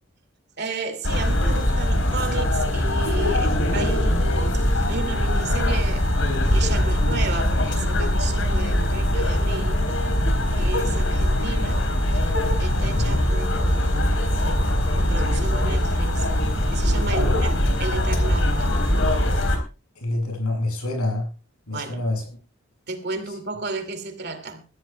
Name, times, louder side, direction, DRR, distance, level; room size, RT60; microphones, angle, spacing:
voice 1, 0.6-6.1 6.4-9.8 10.5-11.8 12.1-14.4 15.0-17.5 17.8-18.8 21.7-22.0 22.9-24.6, right 3 dB, 50° right, 2.5 m, -33 dB
sound 1, 1.0-19.6, left 1 dB, 65° left, 3.9 m, -22 dB
voice 2, 12.9-13.2 17.1-17.3 20.0-21.3 21.7-22.2, left 2 dB, 90° left, 7.4 m, -27 dB
22.5 x 14.5 x 2.3 m
head